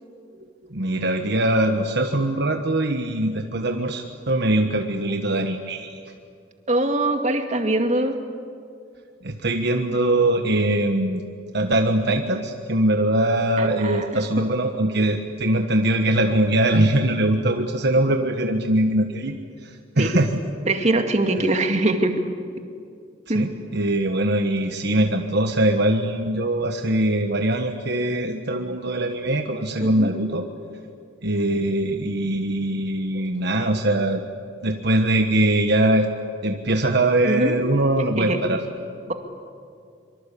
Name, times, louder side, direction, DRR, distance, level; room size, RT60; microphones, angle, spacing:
voice 1, 0.7-6.0 9.2-11.2 11.5-20.4 23.3-30.4 31.2-34.2 34.6-36.1 36.4-38.6, right 1 dB, 65° right, 5 dB, 1.4 m, -22 dB
voice 2, 6.7-8.2 13.6-14.1 20.0-20.1 20.7-22.2 23.3-23.5 29.8-30.1 37.3-37.6 38.2-38.4, right 2 dB, 40° right, 5 dB, 2.3 m, -22 dB
24.5 x 24.5 x 8.5 m, 2.4 s
head